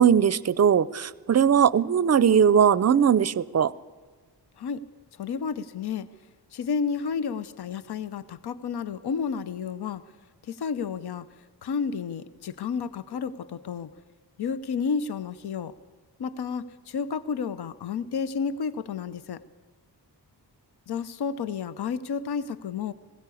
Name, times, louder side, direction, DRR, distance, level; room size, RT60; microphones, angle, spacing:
voice 1, 0.0-3.7, right 8 dB, 40° right, 19 dB, 0.5 m, -20 dB
voice 2, 5.1-6.1 6.5-10.0 10.4-11.3 11.6-13.9 14.4-15.7 16.2-19.4 20.9-22.9, left 6 dB, 70° left, 14 dB, 0.8 m, -31 dB
20.5 x 16.5 x 8.4 m, 1.5 s
wide cardioid pair, 145°, 41 cm